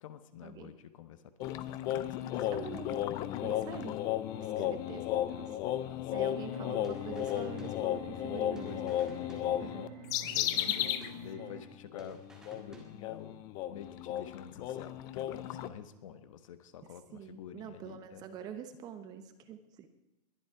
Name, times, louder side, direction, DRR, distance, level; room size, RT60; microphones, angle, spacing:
voice 1, 0.0-2.8 4.7-4.8 5.8-6.4 8.3-9.7 10.2-12.3 12.6-18.2, left 9 dB, 50° left, 12 dB, 1.3 m, -49 dB
sound 1, 1.4-11.1 11.4-11.6 11.9-15.7, left 12 dB, 15° left, 0.4 m, -34 dB
voice 2, 2.5-3.1 3.4-4.0 4.4-5.6 6.1-8.9 9.6-9.9 10.7-10.8 17.1-19.9, right 8 dB, 20° right, 9 dB, 0.9 m, -45 dB
sound 2, 6.3-11.6, equal, 50° right, 5.9 m, -49 dB
sound 3, 6.8-8.3 8.6-10.0 10.3-11.7 12.0-13.3, right 1 dB, 5° right, 2.0 m, -55 dB
21.5 x 11.0 x 4.9 m, 1.0 s
hypercardioid pair, 165°, 21 cm